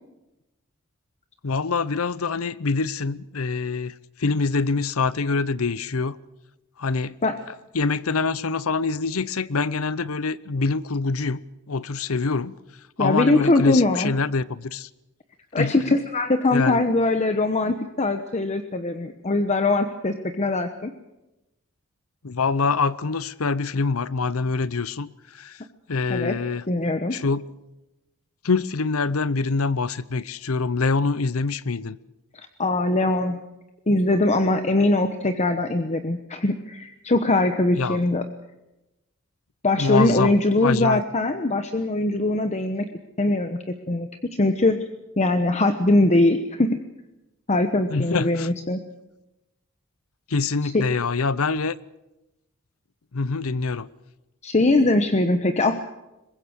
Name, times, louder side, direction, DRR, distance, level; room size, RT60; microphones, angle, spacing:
voice 1, 1.4-6.2 6.8-7.1 7.7-11.4 11.7-12.6 13.0-14.9 15.6-15.7 16.5-16.8 22.2-25.6 25.9-26.6 27.1-27.5 28.4-32.0 37.8-38.0 39.8-40.3 40.6-41.0 47.9-48.6 50.3-51.7 53.1-53.9, left 4 dB, 80° left, 0.8 m, -25 dB
voice 2, 13.0-14.1 15.5-20.9 26.1-26.4 26.7-27.2 32.3-33.4 33.9-38.3 39.6-42.9 43.2-44.8 45.2-46.8 47.5-48.8 50.6-50.8 54.4-55.8, left 2 dB, 35° left, 1.0 m, -22 dB
23.5 x 21.0 x 6.5 m
head